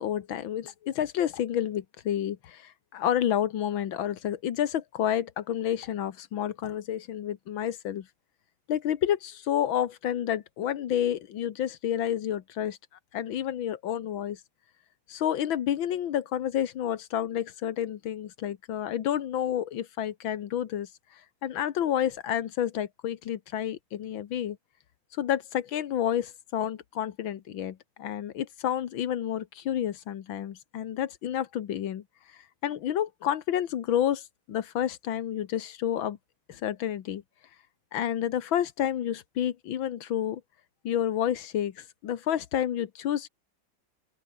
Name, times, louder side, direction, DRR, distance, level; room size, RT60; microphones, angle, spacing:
voice 1, 0.0-8.1 8.7-12.8 13.1-14.4 15.1-20.9 21.4-24.6 25.1-32.0 32.6-36.2 36.5-37.2 37.9-40.4 40.8-43.3, left 10 dB, 90° left, 2.0 m, -30 dB
open air
omnidirectional pair, 2.1 m